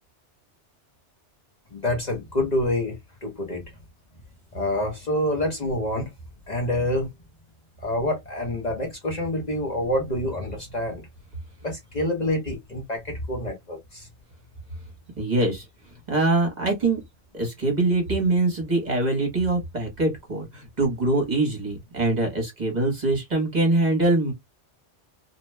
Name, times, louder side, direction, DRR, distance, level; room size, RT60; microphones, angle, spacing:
voice 1, 1.7-3.7 4.5-6.1 6.5-7.1 7.8-11.0 11.6-14.1, left 1 dB, 40° left, 0.8 m, -27 dB
voice 2, 15.2-15.6 16.1-17.0 17.3-24.3, right 2 dB, 40° right, 1.0 m, -23 dB
2.6 x 2.2 x 3.0 m
omnidirectional pair, 1.2 m